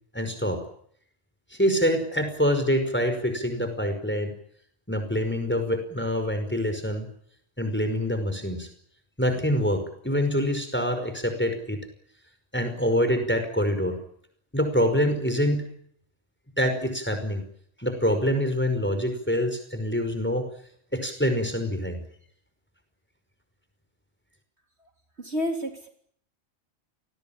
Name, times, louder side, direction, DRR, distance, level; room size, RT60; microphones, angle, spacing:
voice 1, 0.1-0.6 1.5-4.3 4.9-7.1 7.6-8.7 9.2-11.8 12.5-14.0 14.5-15.7 16.6-17.4 17.8-20.5 20.9-22.0, equal, 10° left, 7 dB, 5.3 m, -25 dB
voice 2, 25.2-25.9, equal, 55° right, 4 dB, 3.7 m, -29 dB
29.5 x 19.5 x 8.8 m, 0.66 s
omnidirectional pair, 1.3 m